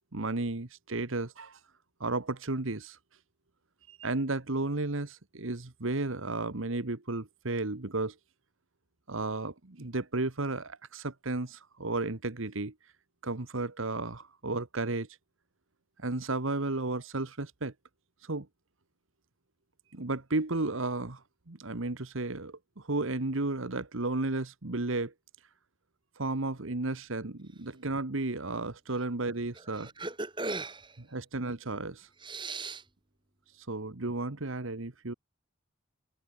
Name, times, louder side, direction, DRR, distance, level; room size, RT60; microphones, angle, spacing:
voice 1, 0.1-1.6 2.0-3.0 3.9-8.1 9.1-12.7 13.2-15.1 16.0-17.7 18.2-18.5 19.9-25.1 26.2-29.9 31.1-32.1 33.5-35.1, right 2 dB, 65° right, 1.4 m, -33 dB
voice 2, 29.8-31.0 32.2-32.8, right 3 dB, 20° right, 2.6 m, -37 dB
head